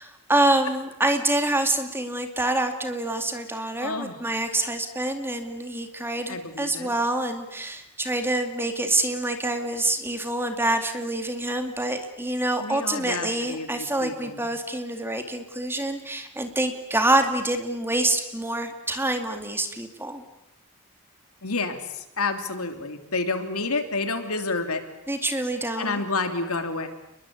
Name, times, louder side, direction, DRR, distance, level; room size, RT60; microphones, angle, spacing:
voice 1, 0.0-20.2 25.1-26.0, right 2 dB, 10° right, 6 dB, 2.4 m, -26 dB
voice 2, 3.8-4.2 6.3-6.9 12.6-14.5 21.4-24.8 25.8-26.9, left 3 dB, 75° left, 7 dB, 3.0 m, -29 dB
29.5 x 22.0 x 8.6 m, 0.85 s
head